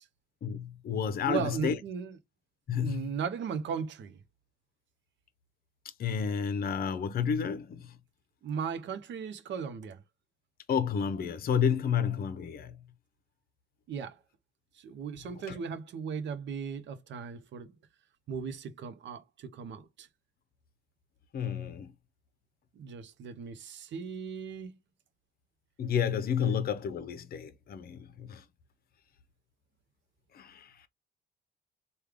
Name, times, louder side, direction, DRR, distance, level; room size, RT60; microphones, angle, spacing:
voice 1, 0.4-1.8 2.7-3.1 6.0-8.0 10.7-12.8 15.5-15.6 21.3-21.9 25.8-28.4 30.3-30.7, left 7 dB, 50° left, 0.6 m, -31 dB
voice 2, 1.3-2.2 2.8-4.2 8.4-10.0 13.9-14.2 14.8-17.7 18.3-20.1 22.8-24.8 26.4-26.6, right 6 dB, 65° right, 0.7 m, -37 dB
3.3 x 2.3 x 3.5 m
cardioid pair, 90°, 20 cm